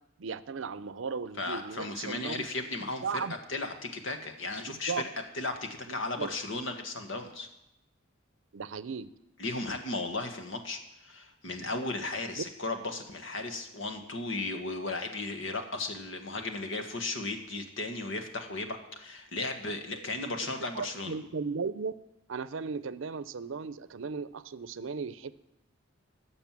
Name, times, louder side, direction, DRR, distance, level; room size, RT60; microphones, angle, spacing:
voice 1, 0.2-2.5 3.0-3.3 4.9-5.0 6.2-6.3 8.5-9.1 12.4-12.5 20.7-21.9 22.3-25.3, right 5 dB, 85° right, 15 dB, 0.5 m, -36 dB
voice 2, 1.4-3.0 3.5-4.9 5.3-7.5 9.4-21.2, left 2 dB, 80° left, 6 dB, 1.6 m, -35 dB
16.0 x 6.7 x 7.4 m, 0.87 s
head